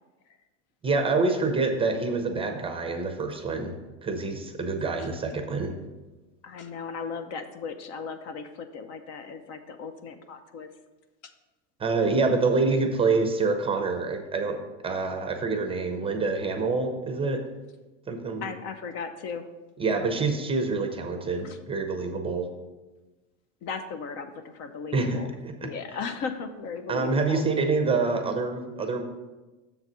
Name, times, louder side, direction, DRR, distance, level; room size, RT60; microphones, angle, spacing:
voice 1, 0.8-3.7 4.0-5.7 11.8-14.6 14.8-17.4 18.1-18.5 19.8-22.5 24.9-25.7 26.9-29.0, right 3 dB, 15° right, 5 dB, 0.6 m, -26 dB
voice 2, 6.4-10.7 18.4-19.4 21.4-21.6 23.6-25.3 25.6-27.4, left 5 dB, 45° left, 9 dB, 0.6 m, -36 dB
6.9 x 4.0 x 6.0 m, 1.2 s
supercardioid pair, 125°, 37 cm